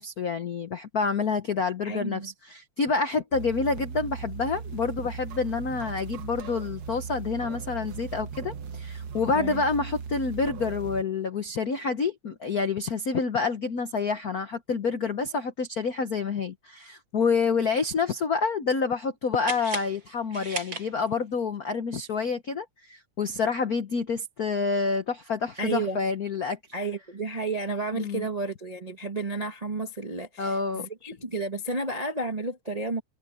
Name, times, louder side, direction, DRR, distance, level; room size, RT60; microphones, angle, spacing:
voice 1, 0.0-26.6 27.9-28.3 30.4-30.9, left 4 dB, 75° left, 0.8 m, -28 dB
voice 2, 1.8-2.3 9.3-9.6 25.6-26.0 26.7-33.0, right 3 dB, 55° right, 0.4 m, -32 dB
sound 1, 3.3-11.0, right 6 dB, 80° right, 0.8 m, -38 dB
sound 2, 19.4-21.4, right 2 dB, 40° right, 7.6 m, -37 dB
omnidirectional pair, 3.3 m